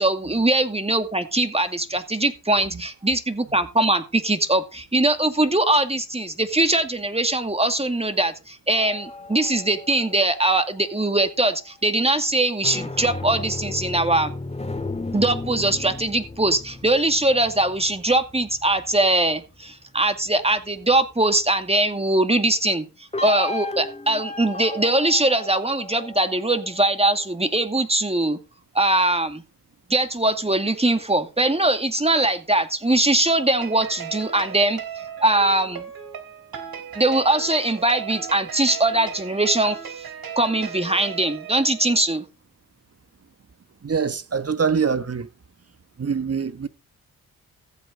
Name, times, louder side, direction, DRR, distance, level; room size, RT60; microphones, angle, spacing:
voice 1, 0.0-14.3 15.1-22.9 23.2-28.4 28.7-29.4 29.9-34.8 35.2-35.9 37.0-40.0 40.4-42.3, right 2 dB, 15° right, 2.2 m, -21 dB
sound 1, 8.8-11.4 12.4-19.3 23.1-27.3, left 2 dB, 15° left, 2.1 m, -35 dB
sound 2, 33.6-42.0, right 7 dB, 65° right, 3.2 m, -36 dB
voice 2, 43.8-45.3 46.0-46.7, right 6 dB, 40° right, 1.4 m, -24 dB
15.0 x 8.1 x 3.9 m
supercardioid pair, 45°, 38 cm